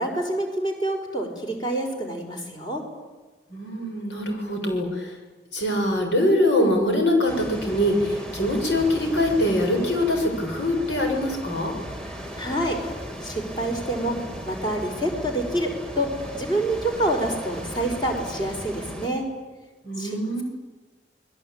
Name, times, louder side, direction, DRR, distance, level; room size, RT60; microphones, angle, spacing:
voice 1, 0.0-2.8 12.0-12.8 13.2-14.2 14.4-16.1 16.3-19.2 20.0-20.4, right 1 dB, 25° left, 3 dB, 5.0 m, -27 dB
voice 2, 3.5-5.2 5.5-11.7 19.8-20.4, left 1 dB, 85° left, 2 dB, 7.0 m, -23 dB
sound 1, 7.3-19.1, equal, 5° left, 3.0 m, -37 dB
28.5 x 21.0 x 8.9 m, 1.3 s
head